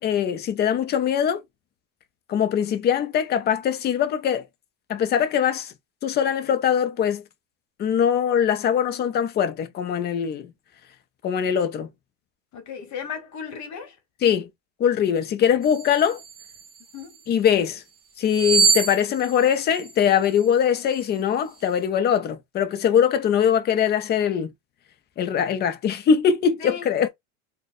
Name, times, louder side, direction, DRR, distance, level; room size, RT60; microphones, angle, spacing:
voice 1, 0.0-1.4 2.3-4.4 4.9-5.7 6.0-7.2 7.8-10.5 11.2-11.9 14.2-14.5 14.8-16.2 17.3-17.8 18.2-24.5 25.2-27.1, left 8 dB, 25° left, 0.4 m, -22 dB
voice 2, 12.5-14.0 16.9-17.2 26.6-26.8, left 7 dB, 40° left, 1.1 m, -35 dB
sound 1, 15.6-17.2 18.3-20.4 20.9-21.1, right 5 dB, 25° right, 0.8 m, -25 dB
3.8 x 2.2 x 2.5 m
supercardioid pair, 125°, 41 cm